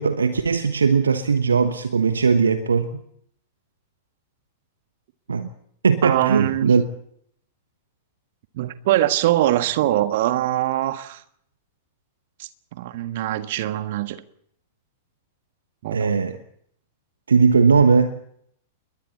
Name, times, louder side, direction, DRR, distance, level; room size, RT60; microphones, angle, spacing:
voice 1, 0.0-3.0 5.3-5.5 5.8-6.8 15.9-16.4 17.3-18.2, right 5 dB, 75° right, 1.2 m, -19 dB
voice 2, 6.0-6.7 8.5-11.2 12.4-12.5 12.8-14.2 15.8-16.1, right 14 dB, 50° right, 1.5 m, -22 dB
29.0 x 22.5 x 4.2 m
figure-of-eight pair, 100°, 0 cm